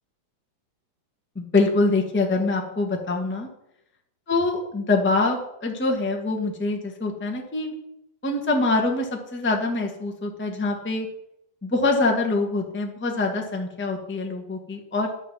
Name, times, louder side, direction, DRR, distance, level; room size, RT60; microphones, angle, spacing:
voice 1, 1.3-3.5 4.3-7.7 8.2-11.1 11.6-15.1, left 3 dB, 10° left, 2 dB, 0.5 m, -24 dB
11.5 x 8.5 x 7.6 m, 0.82 s
omnidirectional pair, 4.2 m